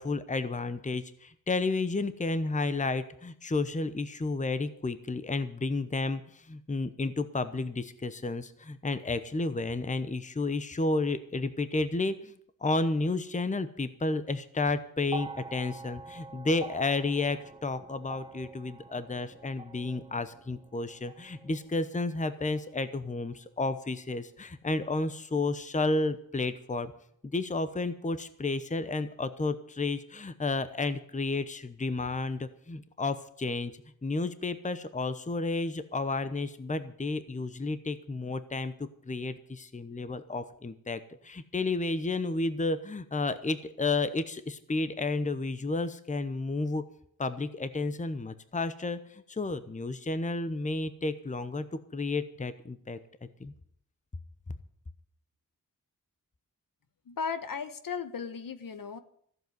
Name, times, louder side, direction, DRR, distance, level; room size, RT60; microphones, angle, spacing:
voice 1, 0.0-26.9 27.2-33.7 34.0-38.7 39.1-46.8 47.2-49.0 49.3-51.6 51.9-53.0 53.4-53.5, left 3 dB, 20° left, 12 dB, 0.9 m, -31 dB
sound 1, 15.0-23.4 24.5-24.6, right 3 dB, 15° right, 1.0 m, -46 dB
voice 2, 57.1-59.0, left 6 dB, 70° left, 11 dB, 1.3 m, -36 dB
14.5 x 7.9 x 9.3 m, 0.65 s
wide cardioid pair, 105°, 35 cm